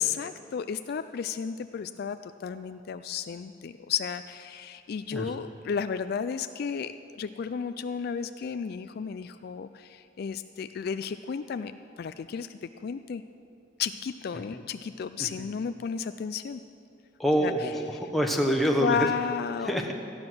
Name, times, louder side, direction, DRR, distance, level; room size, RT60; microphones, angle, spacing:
voice 1, 0.0-11.7 12.0-13.2 13.8-16.6 17.4-18.0 18.8-19.8, left 7 dB, 55° left, 11 dB, 0.3 m, -33 dB
voice 2, 17.2-19.1 19.7-19.9, equal, ahead, 0 dB, 1.1 m, -26 dB
14.0 x 9.7 x 6.2 m, 2.5 s
head